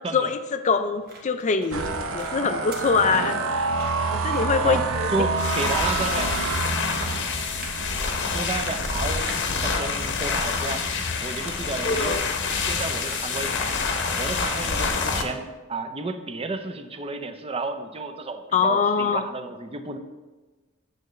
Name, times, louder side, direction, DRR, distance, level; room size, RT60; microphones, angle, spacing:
voice 1, 0.1-3.4 4.1-5.3 11.8-12.2 18.5-19.3, left 5 dB, 35° left, 10 dB, 0.4 m, -24 dB
sound 1, 0.8-15.0, right 2 dB, 45° right, 1.2 m, -46 dB
sound 2, 1.7-11.1 11.6-11.9 12.2-12.7, right 3 dB, 70° right, 0.7 m, -29 dB
voice 2, 4.6-6.4 8.3-10.9 11.2-12.2 12.7-13.5 14.2-20.0, right 3 dB, 25° right, 8 dB, 0.5 m, -32 dB
sound 3, 5.3-15.2, left 4 dB, 55° left, 0.8 m, -27 dB
8.8 x 6.6 x 3.2 m, 1.2 s
head